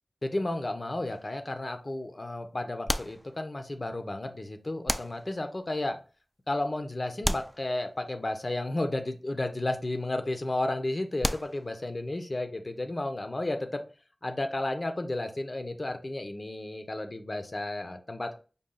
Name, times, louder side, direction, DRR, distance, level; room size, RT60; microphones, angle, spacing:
voice 1, 0.2-6.0 6.5-13.8 14.2-18.4, left 2 dB, 50° left, 6 dB, 0.7 m, -32 dB
sound 1, 1.0-1.6 2.9-3.8 4.9-5.7 7.2-8.3 11.2-12.0, equal, ahead, 0.3 m, -34 dB
5.4 x 2.3 x 3.8 m, 0.36 s
wide cardioid pair, 55°, 0 cm